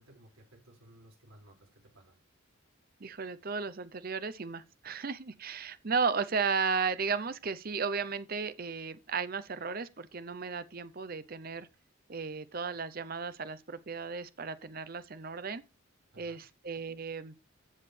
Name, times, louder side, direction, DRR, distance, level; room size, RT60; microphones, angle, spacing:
voice 1, 0.0-2.2 16.1-16.4, right 1 dB, 80° right, 5.5 m, -58 dB
voice 2, 3.0-11.7 12.1-15.6 16.2-17.4, right 5 dB, 45° right, 0.7 m, -34 dB
15.0 x 6.5 x 3.3 m
head